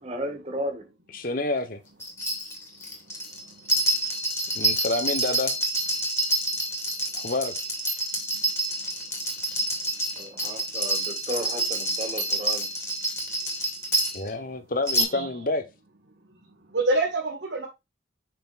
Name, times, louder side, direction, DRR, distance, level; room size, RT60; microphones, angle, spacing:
voice 1, 0.0-0.9 10.2-12.7, equal, 35° right, 1.9 m, -34 dB
voice 2, 1.1-1.8 4.5-5.5 7.1-7.5 14.1-15.6, left 2 dB, 50° left, 1.3 m, -28 dB
sound 1, 2.0-14.3 14.9-15.0, right 1 dB, 15° left, 2.5 m, -27 dB
voice 3, 15.0-15.3 16.7-17.7, right 2 dB, 90° right, 2.0 m, -27 dB
6.7 x 6.0 x 2.6 m
head